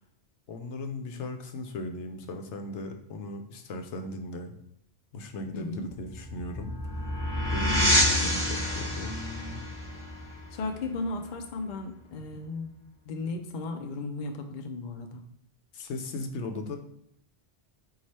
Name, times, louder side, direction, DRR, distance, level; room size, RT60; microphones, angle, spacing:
voice 1, 0.5-4.6 5.1-6.8 7.5-9.6 15.7-16.8, left 2 dB, 80° left, 5 dB, 0.9 m, -37 dB
voice 2, 5.5-5.9 8.2-8.4 10.5-12.7 13.1-15.2, left 2 dB, 50° left, 4 dB, 0.6 m, -35 dB
sound 1, 5.9-11.3, left 1 dB, 25° left, 1.0 m, -28 dB
4.7 x 2.4 x 4.2 m, 0.74 s
omnidirectional pair, 1.2 m